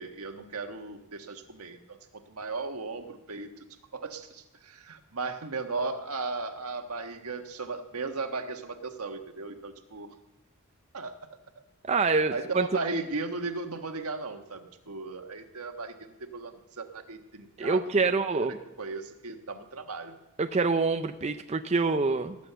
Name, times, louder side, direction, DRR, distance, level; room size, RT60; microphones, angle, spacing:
voice 1, 0.0-2.0 2.3-3.5 3.9-10.1 10.9-11.2 12.3-18.1 18.5-20.2, right 3 dB, 85° right, 6 dB, 1.4 m, -36 dB
voice 2, 11.9-12.7 17.6-18.6 20.4-22.4, right 4 dB, 30° right, 8 dB, 0.5 m, -26 dB
18.5 x 9.0 x 6.8 m, 1.0 s
head